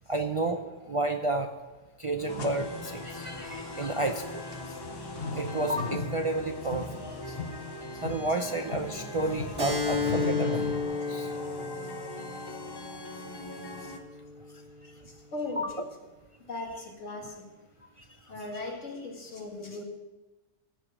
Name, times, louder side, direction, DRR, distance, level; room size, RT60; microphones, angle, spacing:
voice 1, 0.1-1.5 2.0-7.4 7.9-10.7 11.1-11.4 14.8-14.9 15.6-15.7 18.0-18.1, right 2 dB, 35° right, 4 dB, 0.5 m, -31 dB
sound 1, 2.2-10.8, left 4 dB, 55° left, 1.2 m, -39 dB
sound 2, 2.3-14.0, left 2 dB, 25° left, 0.7 m, -41 dB
Keyboard (musical), 9.6-14.7, left 4 dB, 80° right, 3.6 m, -33 dB
voice 2, 15.3-15.6 16.5-17.4 18.3-19.8, left 2 dB, 80° left, 0 dB, 2.3 m, -37 dB
14.5 x 5.0 x 7.3 m, 1.1 s
omnidirectional pair, 1.3 m